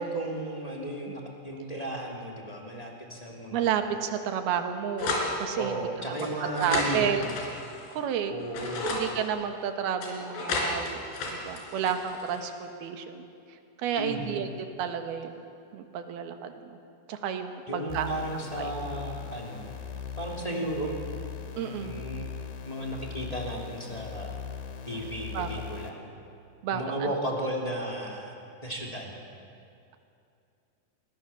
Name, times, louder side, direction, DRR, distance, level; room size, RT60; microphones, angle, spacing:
voice 1, 0.0-3.7 5.5-7.3 8.3-9.0 13.9-14.4 17.7-19.7 20.2-20.9 21.8-22.3 22.6-24.4 24.8-26.0 26.7-28.3 28.6-29.1, right 1 dB, 10° left, -1 dB, 2.3 m, -34 dB
voice 2, 3.5-5.8 6.2-6.3 6.6-7.3 7.9-8.3 8.9-13.3 13.8-15.4 15.7-16.8 17.1-18.1 18.6-18.7 20.5-20.7 21.6-22.0 25.3-25.5 26.6-27.1, right 8 dB, 70° right, 6 dB, 3.3 m, -31 dB
sound 1, 5.0-5.3 6.2-8.0 8.4-9.0 10.0-12.5, left 3 dB, 90° left, 6.0 m, -32 dB
sound 2, 17.9-25.9, left 7 dB, 65° left, 3.7 m, -40 dB
27.5 x 21.5 x 7.1 m, 2.6 s
omnidirectional pair, 4.8 m